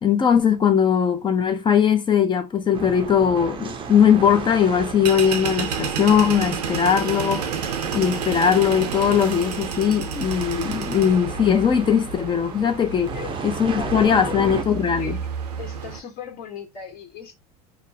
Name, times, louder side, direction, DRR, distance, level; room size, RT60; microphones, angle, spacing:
voice 1, 0.0-7.5 7.9-13.1 13.4-15.2, left 8 dB, 25° left, 0.5 m, -20 dB
sound 1, 2.7-14.6, right 6 dB, 25° right, 0.5 m, -35 dB
sound 2, 3.8-16.0, right 6 dB, 90° right, 0.5 m, -31 dB
voice 2, 13.1-14.7 15.0-15.2 15.6-17.3, left 7 dB, 50° left, 1.3 m, -38 dB
2.4 x 2.0 x 2.7 m
hypercardioid pair, 90°, 20 cm